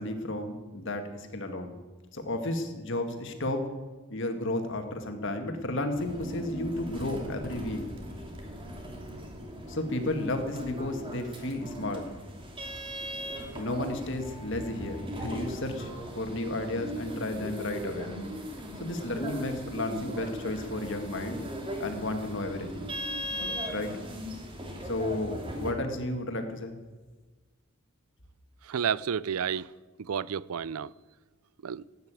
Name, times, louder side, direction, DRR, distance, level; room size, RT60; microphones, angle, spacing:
voice 1, 0.0-1.8 2.1-3.7 4.1-7.8 9.7-12.0 13.6-18.1 18.8-21.4 21.8-22.9 23.7-23.9 24.8-26.8, left 1 dB, 60° left, 2.1 m, -33 dB
sound 1, 5.9-25.7, equal, 25° right, 2.6 m, -39 dB
voice 2, 28.6-29.7 30.0-30.9 31.6-31.8, right 7 dB, 85° right, 0.5 m, -31 dB
16.0 x 9.3 x 9.1 m
head